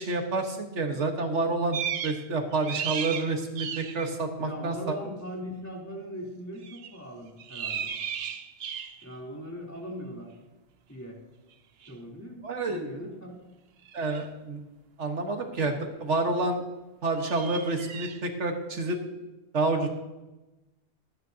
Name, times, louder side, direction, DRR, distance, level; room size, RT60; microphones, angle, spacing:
voice 1, 0.0-4.7 12.4-12.8 13.9-14.6 15.0-16.6 17.0-19.0 19.5-19.9, right 3 dB, 85° right, 4 dB, 1.7 m, -29 dB
sound 1, 1.7-2.3 2.5-4.1 6.6-7.0 7.4-9.1 11.8-11.9 13.9-14.2 17.2-18.2, right 8 dB, 65° right, 0.9 m, -35 dB
voice 2, 4.4-7.9 9.0-10.3 10.9-11.2 11.8-13.4, equal, 15° left, -3 dB, 3.1 m, -40 dB
26.0 x 9.3 x 2.8 m, 1.1 s
omnidirectional pair, 1.2 m